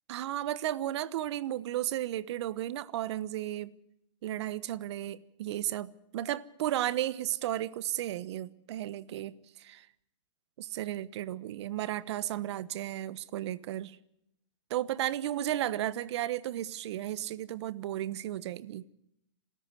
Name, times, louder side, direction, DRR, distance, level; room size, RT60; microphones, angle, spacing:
voice 1, 0.1-3.7 4.2-9.9 10.6-14.0 14.7-18.9, right 13 dB, 60° right, 1.1 m, -34 dB
28.0 x 13.5 x 8.1 m
hypercardioid pair, 130°, 16 cm